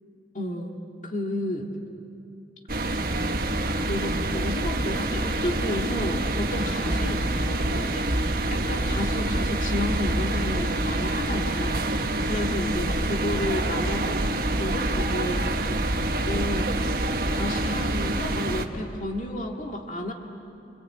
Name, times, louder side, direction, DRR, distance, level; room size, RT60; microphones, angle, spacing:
voice 1, 0.3-1.7 2.8-3.0 3.6-15.5 16.3-16.7 17.3-20.1, left 1 dB, 45° left, 2 dB, 2.1 m, -32 dB
sound 1, 2.7-18.6, right 1 dB, 55° right, 1.5 m, -26 dB
26.0 x 26.0 x 8.9 m, 2.7 s
head